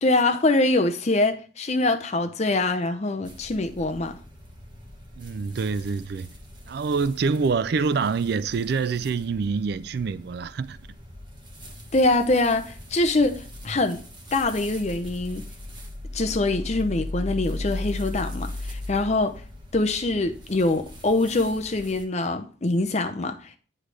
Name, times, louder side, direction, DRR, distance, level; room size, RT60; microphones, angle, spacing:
voice 1, 0.0-4.2 11.9-14.0 14.3-15.5 16.1-19.4 19.7-23.6, left 2 dB, 35° left, 0.6 m, -24 dB
sound 1, 3.3-22.0, left 1 dB, 25° right, 1.3 m, -39 dB
voice 2, 5.2-6.3 6.7-10.8, right 5 dB, 55° right, 0.3 m, -26 dB
10.0 x 3.4 x 6.2 m
head